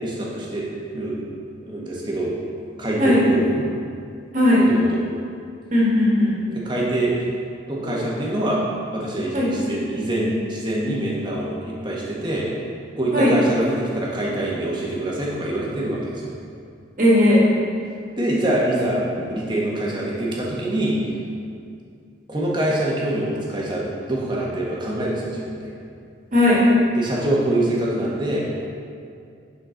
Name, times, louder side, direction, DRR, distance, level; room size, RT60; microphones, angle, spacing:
voice 1, 0.0-1.3 1.6-2.3 2.8-3.7 4.6-5.0 6.5-7.1 7.7-8.6 8.9-12.5 13.0-16.3 18.2-19.0 19.3-21.0 22.3-25.7 27.0-28.4, right 1 dB, 25° right, -5 dB, 1.2 m, -25 dB
voice 2, 5.7-6.3 9.3-9.5 13.1-13.3 17.0-17.5 26.3-26.7, left 1 dB, 40° right, -5 dB, 1.7 m, -16 dB
11.0 x 4.3 x 3.9 m, 2.3 s
head